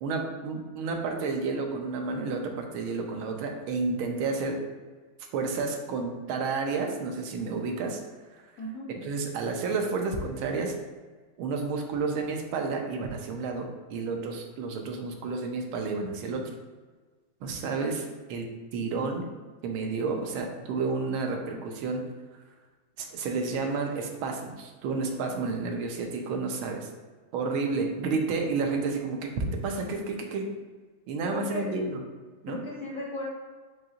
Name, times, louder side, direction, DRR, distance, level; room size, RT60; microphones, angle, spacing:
voice 1, 0.0-4.6 5.3-8.0 8.9-10.7 11.4-16.4 17.4-19.3 19.6-22.0 23.0-26.9 27.3-30.5 31.1-32.0 32.4-32.6, right 4 dB, 85° right, 2 dB, 1.5 m, -31 dB
voice 2, 8.6-8.9 31.3-31.7 32.5-33.2, left 2 dB, 65° left, -5 dB, 0.8 m, -36 dB
7.3 x 2.8 x 2.5 m, 1.4 s
omnidirectional pair, 2.3 m